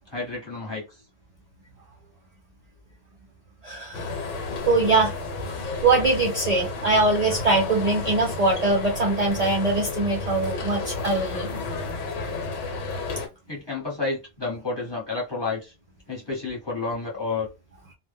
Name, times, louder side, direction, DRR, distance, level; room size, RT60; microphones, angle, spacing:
voice 1, 0.1-0.9 13.5-15.7 16.1-17.5, left 3 dB, 25° left, 0.9 m, -30 dB
voice 2, 3.6-4.0 4.7-5.1 5.8-11.6, right 3 dB, 60° right, 0.4 m, -22 dB
sound 1, 3.9-13.3, left 3 dB, 90° left, 1.0 m, -32 dB
2.1 x 2.0 x 3.3 m
omnidirectional pair, 1.2 m